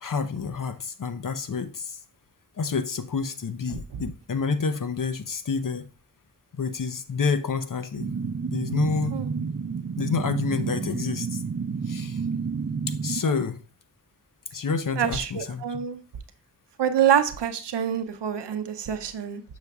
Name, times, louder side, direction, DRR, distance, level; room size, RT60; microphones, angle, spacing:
voice 1, 0.0-2.0 2.6-5.9 6.5-8.1 8.5-9.2 10.0-11.4 11.9-12.2 12.9-13.6 14.5-15.8, left 5 dB, 50° left, 0.8 m, -28 dB
sound 1, 8.0-13.2, right 5 dB, 35° right, 0.5 m, -30 dB
voice 2, 15.0-16.0 16.8-19.4, right 9 dB, 80° right, 0.7 m, -26 dB
6.7 x 6.3 x 2.3 m
cardioid pair, 45°, 41 cm